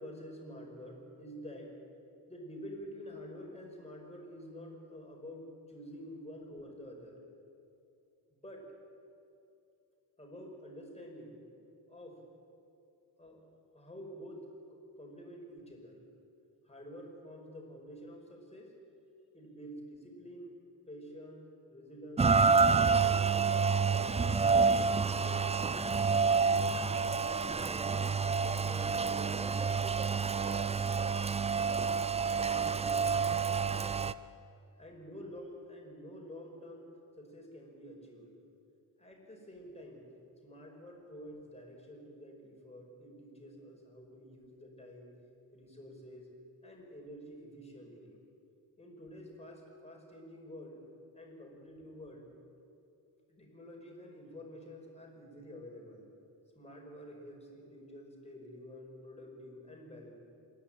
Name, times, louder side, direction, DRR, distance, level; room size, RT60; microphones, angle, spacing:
voice 1, 0.0-1.7 2.3-7.1 8.3-8.7 10.2-11.4 11.9-12.2 13.2-13.5 13.7-16.1 16.6-18.8 19.3-20.6 20.9-22.3 22.6-24.1 25.1-26.0 26.3-28.0 28.3-30.2 32.3-32.7 34.8-38.4 39.0-40.1 40.4-45.2 45.5-46.4 46.6-48.2 48.8-50.8 51.1-52.3 53.3-56.1 56.6-60.1, equal, 15° left, 0 dB, 5.3 m, -49 dB
Rain, 22.2-34.1, right 5 dB, 15° right, 0.4 m, -28 dB
27.0 x 11.0 x 8.8 m, 2.6 s
cardioid pair, 95°, 40 cm